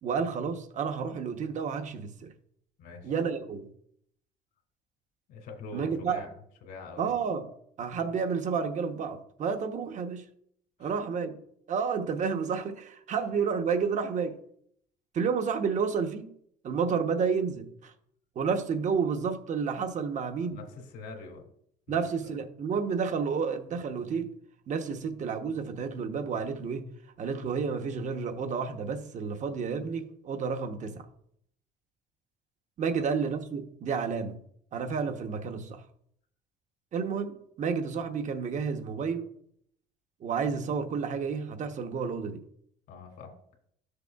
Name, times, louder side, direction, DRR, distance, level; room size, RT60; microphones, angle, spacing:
voice 1, 0.0-2.3 3.0-3.7 5.7-6.2 7.0-7.5 7.8-10.2 10.8-11.4 11.7-14.4 15.1-16.3 16.6-17.9 18.4-20.6 21.9-24.3 24.7-26.9 27.2-31.0 32.8-34.4 34.7-35.8 36.9-39.3 40.2-42.4, right 6 dB, 45° right, 0.9 m, -30 dB
voice 2, 2.8-3.1 5.3-6.3 6.6-7.2 10.8-10.9 20.5-21.5 21.9-22.0 42.9-43.4, left 3 dB, 75° left, 2.1 m, -44 dB
13.0 x 6.6 x 2.3 m
cardioid pair, 110°, 17 cm